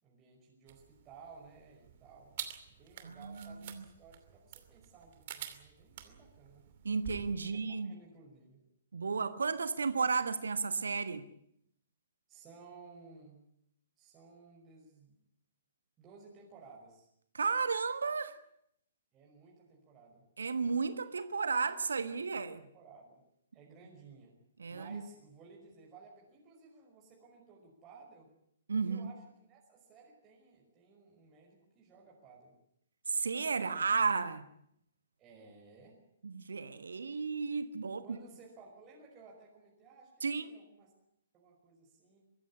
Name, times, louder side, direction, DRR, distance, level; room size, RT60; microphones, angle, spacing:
voice 1, 0.0-2.3 2.7-6.6 7.4-8.6 12.3-13.4 14.0-15.2 16.0-17.1 19.1-20.2 22.3-23.2 23.5-24.3 24.7-28.3 28.9-32.5 35.2-35.9 38.0-40.9 41.3-42.2, right 4 dB, 20° right, 5.5 m, -57 dB
sound 1, 0.7-7.3, right 10 dB, 40° right, 2.7 m, -48 dB
voice 2, 3.0-3.7 6.8-7.9 8.9-11.2 17.3-18.3 20.4-22.6 24.6-25.0 28.7-29.1 33.1-34.5 36.2-38.0 40.2-40.5, right 5 dB, 65° right, 1.3 m, -33 dB
23.5 x 15.5 x 9.8 m
figure-of-eight pair, 120°, 0 cm